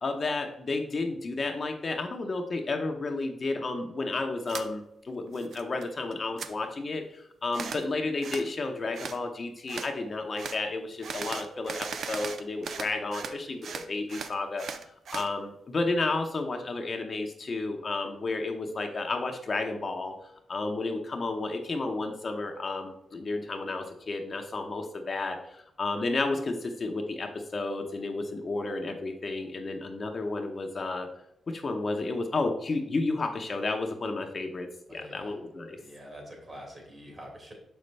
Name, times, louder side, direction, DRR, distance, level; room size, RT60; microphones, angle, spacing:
voice 1, 0.0-14.7 15.1-20.1 20.5-31.1 31.5-35.8, left 3 dB, 45° left, 3 dB, 0.8 m, -32 dB
sound 1, 4.5-4.7 5.1-5.9 6.1-6.5 7.5-7.8 8.2-8.5 8.9-9.2 9.7-9.9 10.4-10.6 11.0-13.4 13.6-15.3, right 6 dB, 70° right, 0.5 m, -38 dB
voice 2, 34.9-35.3 35.8-37.5, equal, 35° right, 0 dB, 2.6 m, -45 dB
6.4 x 5.3 x 3.3 m, 0.79 s
cardioid pair, 75°, 0 cm